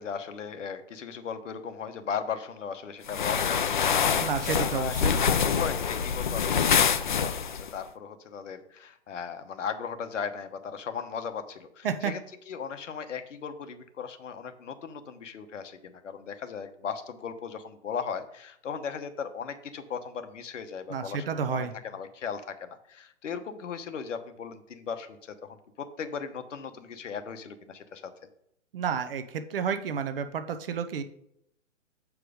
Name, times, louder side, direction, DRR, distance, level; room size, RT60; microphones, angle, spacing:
voice 1, 0.0-12.2 12.5-28.1, left 6 dB, 70° left, 8 dB, 1.1 m, -37 dB
sound 1, 3.1-7.7, left 7 dB, 40° left, 0.4 m, -26 dB
voice 2, 4.2-5.1 11.8-12.1 20.9-21.7 28.7-31.0, right 6 dB, 45° right, 10 dB, 0.8 m, -30 dB
7.8 x 4.8 x 5.0 m, 0.75 s
hypercardioid pair, 160°, 39 cm